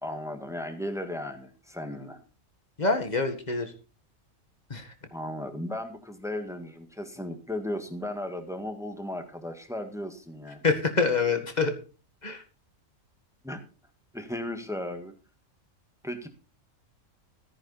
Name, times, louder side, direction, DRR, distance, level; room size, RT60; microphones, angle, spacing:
voice 1, 0.0-2.2 5.1-10.6 13.4-13.6 14.1-15.1 16.0-16.3, left 1 dB, ahead, 7 dB, 1.6 m, -35 dB
voice 2, 2.8-3.7 4.7-4.9 10.6-11.7 12.2-12.4, left 4 dB, 35° left, 6 dB, 1.9 m, -26 dB
14.0 x 9.9 x 4.2 m, 0.35 s
omnidirectional pair, 1.4 m